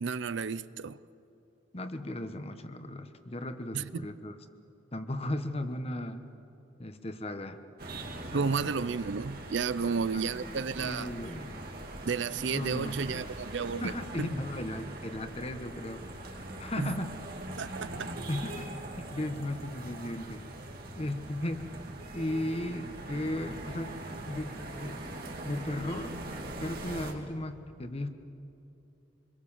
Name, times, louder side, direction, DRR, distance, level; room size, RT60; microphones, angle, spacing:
voice 1, 0.0-1.0 3.7-4.0 8.3-11.1 12.1-13.9 14.2-14.3 16.8-16.9 17.6-18.2, right 5 dB, 65° right, 0.5 m, -32 dB
voice 2, 1.7-4.3 4.9-6.2 6.8-7.6 8.3-8.7 9.8-10.2 10.8-11.7 12.3-13.3 13.8-17.1 18.3-18.6 19.0-20.4 21.0-21.7 22.1-24.0 24.3-25.0 25.4-26.1 26.6-28.1, left 1 dB, 30° left, 1.1 m, -36 dB
sound 1, 7.8-27.1, right 1 dB, 50° right, 2.8 m, -42 dB
26.5 x 22.5 x 7.3 m
head